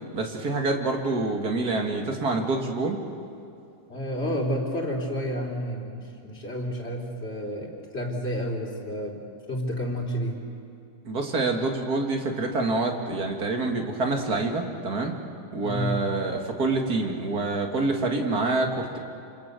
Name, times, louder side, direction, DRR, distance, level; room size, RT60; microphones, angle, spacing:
voice 1, 0.1-3.0 11.0-15.1 15.5-19.0, right 3 dB, 50° right, 2 dB, 2.7 m, -26 dB
voice 2, 3.9-9.2 9.5-10.4 15.6-15.9, equal, 30° left, -2 dB, 3.9 m, -30 dB
27.5 x 26.0 x 6.9 m, 2.5 s
omnidirectional pair, 2.2 m